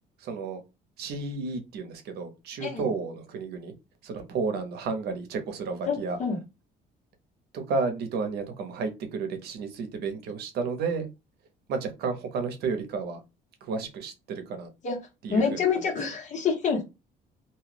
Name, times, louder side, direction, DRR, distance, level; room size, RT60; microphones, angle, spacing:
voice 1, 0.2-0.6 1.0-3.7 4.0-6.2 7.5-11.1 11.7-13.2 13.6-14.7 15.2-15.6, right 4 dB, 75° right, 0.8 m, -32 dB
voice 2, 2.6-2.9 5.9-6.4 14.8-15.0 15.3-16.8, left 5 dB, 45° left, 1.3 m, -27 dB
2.8 x 2.3 x 3.3 m
cardioid pair, 110°, 17 cm